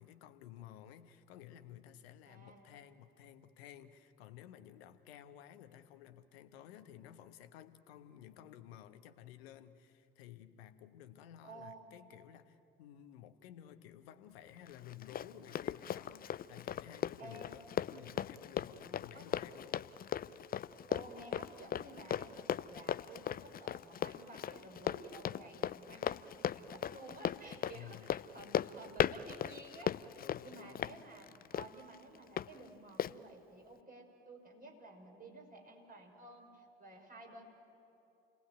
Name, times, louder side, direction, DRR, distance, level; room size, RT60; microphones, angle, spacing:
voice 1, 0.0-19.9 27.7-28.2 30.2-31.0, left 11 dB, 70° left, 10 dB, 1.3 m, -54 dB
voice 2, 2.3-2.7 11.4-11.8 17.2-17.6 19.1-19.3 20.9-37.4, right 2 dB, 25° right, 1 dB, 6.1 m, -53 dB
Run, 14.7-32.5 33.0-33.1, left 9 dB, 30° left, 0.5 m, -38 dB
28.5 x 19.0 x 9.4 m, 2.7 s
figure-of-eight pair, 60°, 32 cm